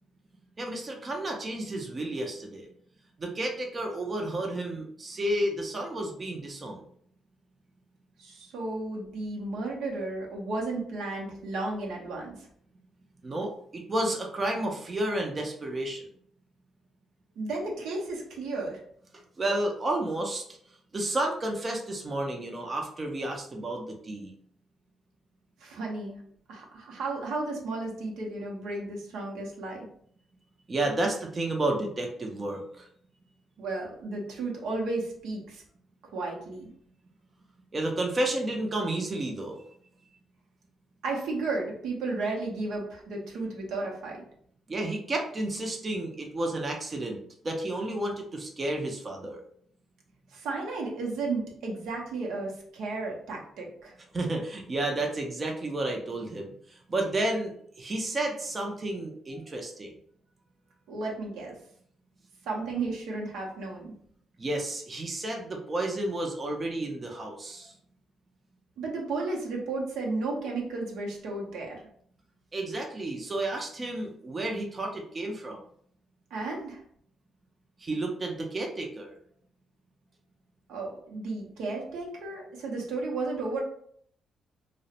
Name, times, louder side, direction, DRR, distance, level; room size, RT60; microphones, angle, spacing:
voice 1, 0.6-2.7 3.2-6.8 13.2-16.0 19.4-24.3 30.7-32.9 37.7-39.6 44.7-47.2 47.4-49.4 54.1-59.9 64.4-67.7 72.5-75.6 77.8-79.2, right 1 dB, 30° right, 1 dB, 0.5 m, -31 dB
voice 2, 8.2-12.5 17.4-18.8 25.6-26.2 26.5-29.9 33.6-35.6 36.1-36.7 41.0-44.2 50.3-53.9 60.9-61.6 62.5-63.9 68.8-71.8 76.3-76.8 80.7-83.6, right 3 dB, 85° right, -1 dB, 0.6 m, -33 dB
2.4 x 2.0 x 2.7 m, 0.62 s
cardioid pair, 90°, 0 cm